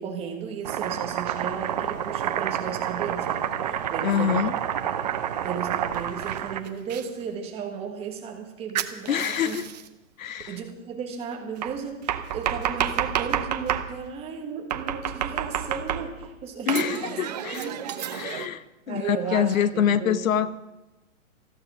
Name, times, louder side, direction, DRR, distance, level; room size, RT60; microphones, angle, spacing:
voice 1, 0.0-4.4 5.4-9.6 10.5-17.1 17.5-18.3 18.9-20.2, right 6 dB, 15° right, 2 dB, 1.4 m, -35 dB
Domestic sounds home sounds, 0.6-7.0 8.8-9.9 11.6-13.9 14.7-16.3 16.7-18.5, right 10 dB, 30° right, 0.6 m, -29 dB
voice 2, 4.0-4.5 9.1-9.7 10.2-10.6 16.7-17.7 18.1-20.6, left 9 dB, 70° left, 15 dB, 0.8 m, -25 dB
14.0 x 12.5 x 6.2 m, 1.1 s
hypercardioid pair, 165°, 42 cm